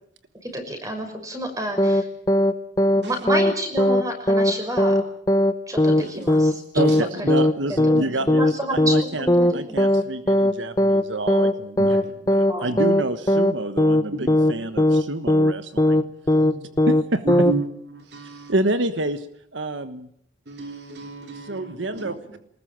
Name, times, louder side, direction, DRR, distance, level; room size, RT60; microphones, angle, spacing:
voice 1, 0.4-2.1 2.9-5.0 5.7-7.4 7.7-8.1 8.4-9.9 12.5-12.7 14.4-14.5, right 1 dB, 20° right, 5 dB, 5.8 m, -30 dB
sound 1, 1.8-2.0 2.3-2.5 2.8-3.0 3.3-3.5 3.8-4.0 4.3-4.5 4.8-5.0 5.3-5.5 5.8-6.0 6.3-6.5 6.8-7.0 7.3-7.5 7.8-8.0 8.3-8.5 8.8-9.0 9.3-9.5 9.8-10.0 10.3-10.5 10.8-11.0 11.3-11.5 11.8-12.0 12.3-12.5 12.8-13.0 13.3-13.5 13.8-14.0 14.3-14.5 14.8-15.0 15.3-15.5 15.8-16.0 16.3-16.5 16.8-17.0 17.3-17.5, left 1 dB, 20° left, 1.0 m, -18 dB
voice 2, 5.9-6.3 6.7-12.0 12.3-16.1 16.9-17.6 18.5-19.3 19.5-20.1 21.3-22.4, right 2 dB, 85° right, 11 dB, 1.3 m, -28 dB
voice 3, 17.3-17.6 17.9-18.5 20.5-22.1, right 3 dB, 65° right, 6 dB, 3.3 m, -32 dB
23.5 x 20.5 x 9.0 m, 0.69 s
head